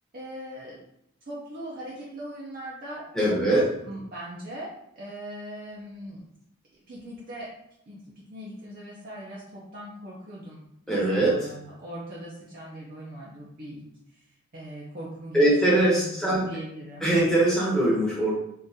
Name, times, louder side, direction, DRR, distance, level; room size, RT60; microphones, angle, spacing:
voice 1, 0.1-0.8 1.2-6.3 6.9-7.5 7.9-14.2 14.5-17.1, right 1 dB, 40° right, -6 dB, 0.6 m, -40 dB
voice 2, 3.1-3.7 10.9-11.5 15.3-16.5 17.0-18.3, right 1 dB, ahead, -6 dB, 0.9 m, -22 dB
3.7 x 2.5 x 2.7 m, 0.77 s
head